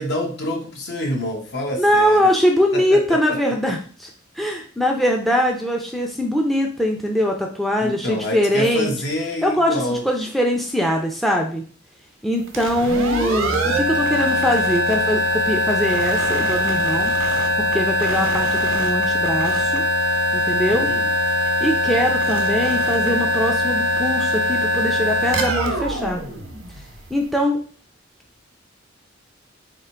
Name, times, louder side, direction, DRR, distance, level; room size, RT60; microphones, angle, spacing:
voice 1, 0.0-2.3 2.7-3.7 7.8-10.1 20.7-21.1, left 1 dB, 60° left, 1 dB, 1.1 m, -27 dB
voice 2, 1.8-4.1 4.4-8.9 9.4-11.6 12.2-17.1 17.6-19.8 20.3-20.9 21.6-26.2 27.1-27.6, equal, ahead, 2 dB, 0.5 m, -22 dB
sound 1, 12.5-27.1, equal, 85° right, 0.9 m, -21 dB
3.7 x 2.5 x 4.4 m, 0.42 s
head